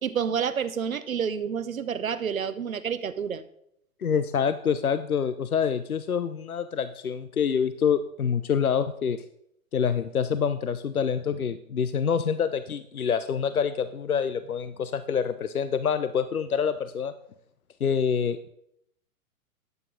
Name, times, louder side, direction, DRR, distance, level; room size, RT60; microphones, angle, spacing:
voice 1, 0.0-3.4, right 7 dB, 70° right, 12 dB, 0.9 m, -29 dB
voice 2, 4.0-9.2 9.7-17.1 17.8-18.4, left 7 dB, 80° left, 12 dB, 0.7 m, -26 dB
12.0 x 9.1 x 3.9 m, 0.72 s
figure-of-eight pair, 110°, 43 cm